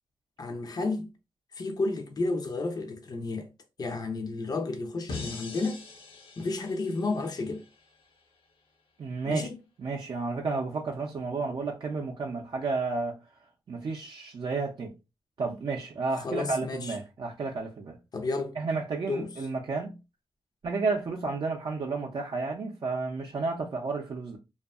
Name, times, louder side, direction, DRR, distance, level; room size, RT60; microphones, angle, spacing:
voice 1, 0.4-1.1 1.5-3.5 3.8-5.8 6.4-7.6 9.2-9.6 16.2-17.0 18.1-18.6 19.1-19.3, left 3 dB, 45° left, 0.5 m, -31 dB
sound 1, 5.1-8.2, left 3 dB, 75° left, 0.8 m, -43 dB
voice 2, 9.0-9.5 9.8-13.2 13.7-14.9 15.4-18.0 18.6-20.0 20.6-24.4, right 4 dB, 55° right, 0.5 m, -31 dB
2.6 x 2.3 x 2.3 m
wide cardioid pair, 95°, 9 cm